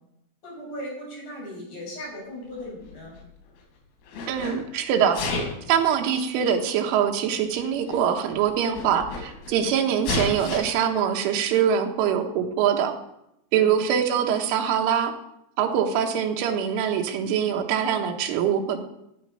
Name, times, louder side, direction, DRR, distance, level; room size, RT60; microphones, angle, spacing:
voice 1, 0.4-3.2 13.5-13.8, equal, 45° left, -3 dB, 7.0 m, -38 dB
Sneeze, 2.6-3.6 4.0-4.6 5.1-5.7 6.6-6.7 7.6-7.7 7.9-8.0 8.4-9.5 10.0-10.6, left 3 dB, 90° left, 5.6 m, -31 dB
voice 2, 4.3-5.2 5.7-12.9 13.5-15.1 15.6-18.8, right 8 dB, 75° right, 4 dB, 3.6 m, -23 dB
15.5 x 9.0 x 5.5 m, 0.84 s
omnidirectional pair, 6.0 m